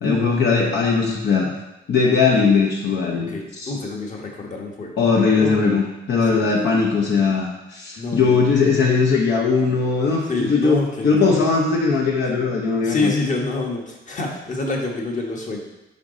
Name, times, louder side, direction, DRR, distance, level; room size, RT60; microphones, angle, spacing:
voice 1, 0.0-1.5 1.9-3.7 5.0-13.1, left 4 dB, 60° left, -2 dB, 0.9 m, -19 dB
voice 2, 3.3-4.9 5.4-5.6 6.3-6.7 8.0-8.4 10.3-11.3 12.8-15.6, left 3 dB, 40° left, 0 dB, 1.3 m, -27 dB
5.8 x 4.9 x 3.8 m, 0.98 s
cardioid pair, 90°, 20 cm